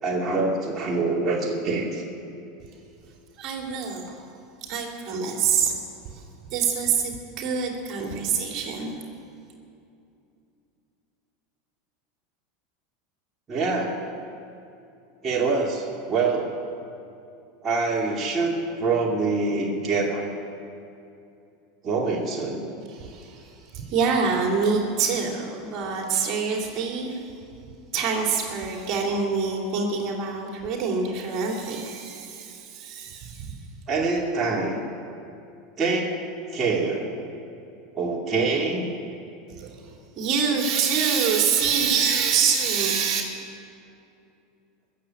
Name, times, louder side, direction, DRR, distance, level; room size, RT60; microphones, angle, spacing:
voice 1, 0.0-2.0 13.5-13.9 15.2-16.6 17.6-20.3 21.8-22.6 33.9-34.8 35.8-36.2 36.5-37.1 38.0-38.9, right 3 dB, 30° right, -3 dB, 2.6 m, -25 dB
voice 2, 3.4-4.3 4.6-5.7 6.1-6.2 6.5-8.9 22.9-27.2 27.9-33.5 39.6-43.2, right 6 dB, 50° right, 1 dB, 2.8 m, -26 dB
21.0 x 7.5 x 8.9 m, 2.6 s
hypercardioid pair, 100°, 0 cm